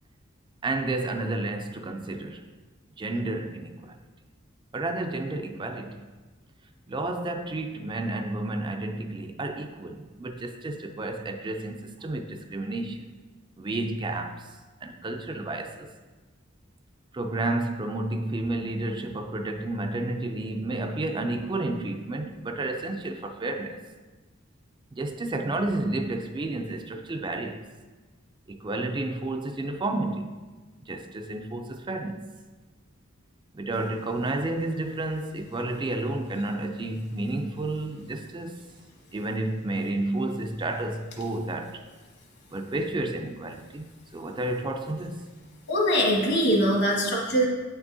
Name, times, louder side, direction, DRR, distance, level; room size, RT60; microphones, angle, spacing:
voice 1, 0.6-2.5 3.0-4.0 4.7-6.1 6.9-13.1 13.6-14.5 14.8-15.9 17.1-23.8 24.9-27.6 28.5-30.3 30.9-32.2 33.5-38.6 39.1-41.8 42.5-43.9 44.1-45.3, right 2 dB, 25° right, 0.4 m, -31 dB
voice 2, 45.7-47.5, equal, 55° left, 1.5 m, -22 dB
8.6 x 6.0 x 2.7 m
head